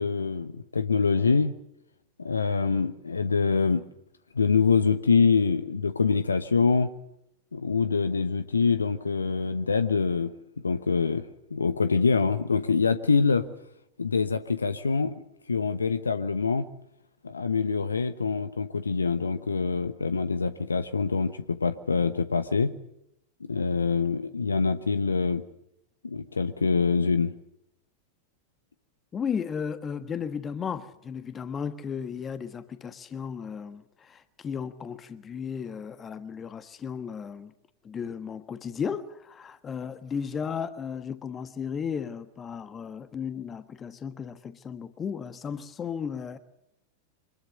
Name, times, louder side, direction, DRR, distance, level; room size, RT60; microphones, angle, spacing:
voice 1, 0.0-1.5 2.2-3.9 4.3-6.9 7.5-10.3 10.6-13.5 14.0-15.1 15.5-16.7 17.2-22.7 23.5-25.4 26.0-27.4, left 5 dB, 75° left, 1.1 m, -25 dB
voice 2, 29.1-37.5 37.8-46.4, left 7 dB, 20° left, 1.3 m, -35 dB
25.0 x 20.5 x 6.9 m
figure-of-eight pair, 90°, 0 cm